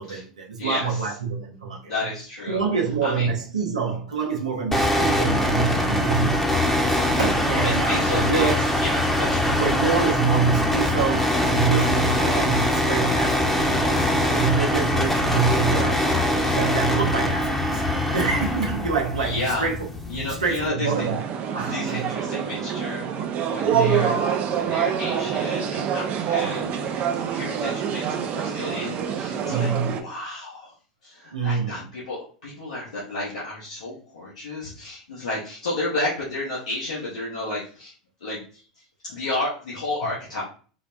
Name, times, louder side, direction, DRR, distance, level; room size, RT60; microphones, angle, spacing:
voice 1, 0.0-1.9 2.5-8.6 9.4-13.9 14.3-16.0 16.5-17.8 18.1-19.9 20.1-22.1 23.6-24.2 29.4-29.9 31.3-31.9, right 5 dB, 90° right, 0.7 m, -26 dB
voice 2, 0.6-1.1 1.8-2.6 3.0-3.3 6.9-7.1 7.4-9.6 19.2-19.7 20.1-20.9 21.7-23.0 23.5-24.2 24.5-30.7 31.0-37.9 38.2-38.6 39.1-40.4, left 2 dB, 80° left, 1.0 m, -32 dB
sound 1, 4.7-20.7, left 1 dB, 5° left, 0.8 m, -23 dB
sound 2, 20.8-30.0, right 8 dB, 40° right, 0.4 m, -26 dB
3.9 x 2.1 x 2.5 m
hypercardioid pair, 85°, 4 cm